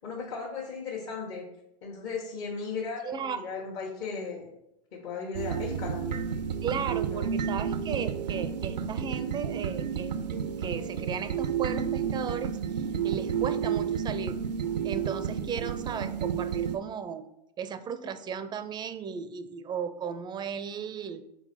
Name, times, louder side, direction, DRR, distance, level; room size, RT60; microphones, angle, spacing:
voice 1, 0.0-1.4 1.8-4.5 4.9-6.3 7.1-7.3, left 5 dB, 50° left, -4 dB, 1.5 m, -36 dB
voice 2, 3.0-3.4 6.6-10.1 10.6-14.4 14.8-17.2 17.6-21.2, right 7 dB, 20° right, 12 dB, 0.4 m, -35 dB
sound 1, 5.3-16.8, right 7 dB, 90° right, 0.4 m, -31 dB
4.4 x 3.9 x 5.5 m, 0.84 s
hypercardioid pair, 100°, 21 cm